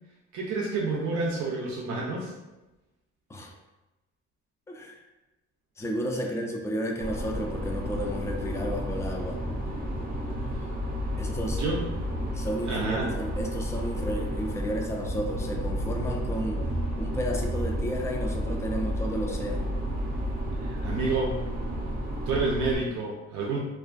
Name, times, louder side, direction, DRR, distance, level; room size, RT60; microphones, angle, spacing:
voice 1, 0.3-2.3 11.6-11.9 12.6-13.1 20.6-21.4 22.3-23.6, right 3 dB, 80° right, -2 dB, 0.5 m, -29 dB
voice 2, 4.7-5.0 5.8-9.4 11.2-11.6 12.3-16.6 17.0-19.7, equal, 10° left, 1 dB, 0.3 m, -32 dB
sound 1, 7.0-22.8, equal, 30° right, 0.6 m, -31 dB
2.3 x 2.3 x 2.4 m, 1.0 s
cardioid pair, 85°, 29 cm